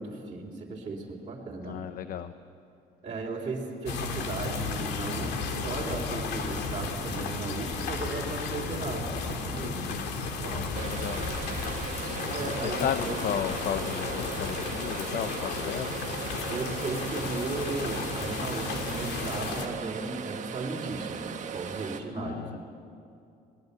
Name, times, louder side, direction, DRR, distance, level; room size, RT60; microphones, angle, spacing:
voice 1, 0.0-1.8 3.0-9.8 10.4-10.7 12.2-13.2 16.5-22.6, right 3 dB, 30° right, -4 dB, 3.5 m, -36 dB
voice 2, 1.6-2.3 9.6-11.2 12.6-16.0 22.1-22.6, left 9 dB, 60° left, 11 dB, 0.8 m, -34 dB
sound 1, 3.9-19.7, left 4 dB, 80° left, 2.3 m, -34 dB
sound 2, 6.4-7.3 7.7-8.7 9.1-9.9 10.5-13.0 13.5-13.8 14.2-14.8, left 2 dB, 20° left, 1.7 m, -43 dB
sound 3, 10.7-22.0, right 7 dB, 45° right, 1.4 m, -38 dB
23.0 x 19.5 x 8.2 m, 2.5 s
cardioid pair, 110°, 17 cm